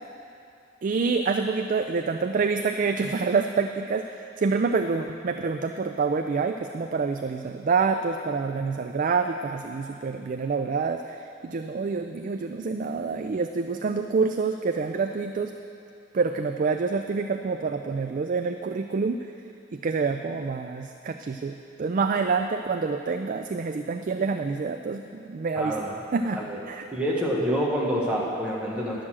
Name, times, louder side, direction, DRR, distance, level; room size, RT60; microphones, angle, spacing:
voice 1, 0.8-15.5 16.1-19.2 19.8-25.7 26.1-26.4 26.7-26.9, right 4 dB, 45° right, 6 dB, 0.4 m, -27 dB
voice 2, 25.5-26.0 26.3-26.6 26.9-29.0, equal, 5° right, -5 dB, 1.1 m, -27 dB
11.5 x 6.3 x 7.4 m, 2.6 s
head